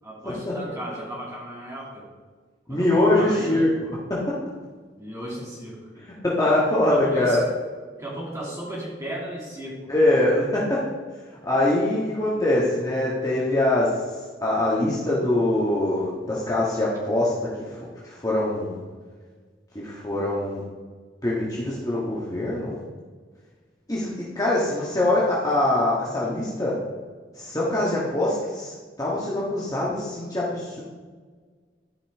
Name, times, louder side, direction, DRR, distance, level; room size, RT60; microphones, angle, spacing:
voice 1, 0.0-2.1 2.7-3.7 4.9-6.0 6.9-7.4 8.0-9.9 11.5-11.7, right 1 dB, 20° right, -6 dB, 2.6 m, -35 dB
voice 2, 2.7-4.2 6.2-7.4 9.9-10.8 11.4-13.9 14.4-17.5 18.0-18.8 19.7-20.6 21.2-22.8 23.9-26.8 27.4-30.8, left 1 dB, 20° left, -6 dB, 1.6 m, -23 dB
13.0 x 5.6 x 3.6 m, 1.5 s
head